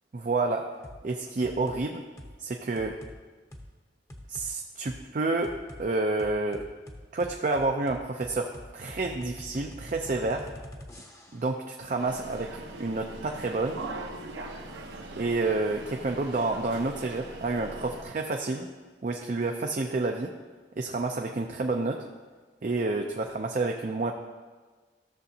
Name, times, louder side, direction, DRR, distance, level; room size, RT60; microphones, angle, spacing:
voice 1, 0.1-0.7 1.0-2.0 2.4-3.0 4.3-6.7 7.1-10.5 11.3-13.8 15.2-18.7 19.0-20.3 20.8-22.1 22.6-24.1, right 3 dB, 45° right, 3 dB, 0.5 m, -29 dB
sound 1, 0.8-1.0 1.4-1.8 2.2-2.4 2.8-3.2 3.5-3.7 4.1-4.5 4.9-5.0 5.4-5.8 6.2-11.5, left 1 dB, 15° left, 0.7 m, -45 dB
sound 2, 12.0-18.0, right 2 dB, 80° right, 1.0 m, -41 dB
14.0 x 6.8 x 2.8 m, 1.4 s
head